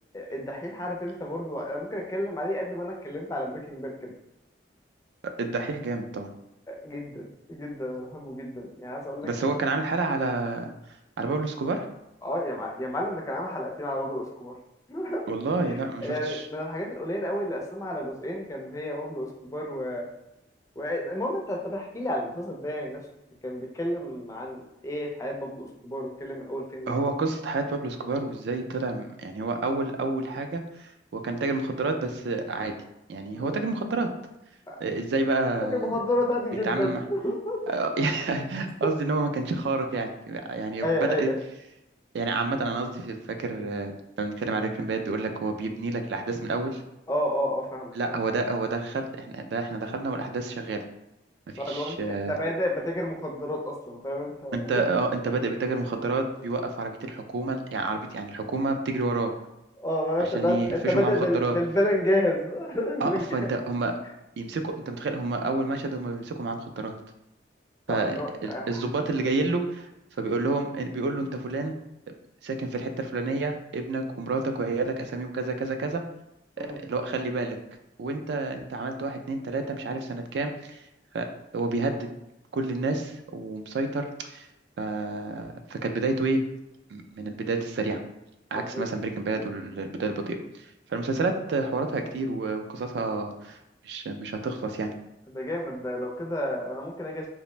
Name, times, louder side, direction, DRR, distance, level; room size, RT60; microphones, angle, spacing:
voice 1, 0.1-4.1 6.7-9.3 12.2-14.5 14.9-15.2 15.6-20.1 20.8-23.0 23.4-26.9 33.3-33.5 34.7-34.8 35.7-37.6 40.8-41.3 47.1-48.2 51.6-54.8 59.8-63.3 67.9-68.8 76.6-76.8 88.5-88.8 95.3-97.3, left 1 dB, 15° left, -1 dB, 0.4 m, -30 dB
voice 2, 5.2-6.3 9.2-10.7 11.2-11.9 15.3-16.5 26.9-32.7 33.1-34.1 34.8-35.9 36.6-37.0 37.7-41.3 42.1-43.9 44.2-46.8 48.0-50.8 51.5-52.3 54.5-59.3 60.2-61.6 63.0-63.9 64.4-66.9 67.9-69.9 70.2-71.8 72.4-76.0 76.6-77.6 78.0-80.8 81.1-81.3 81.5-82.1 82.5-84.5 84.8-86.4 86.9-88.0 88.5-90.6 90.9-93.6 93.8-94.9, right 3 dB, 65° right, 6 dB, 0.3 m, -29 dB
2.5 x 2.0 x 3.0 m, 0.88 s
head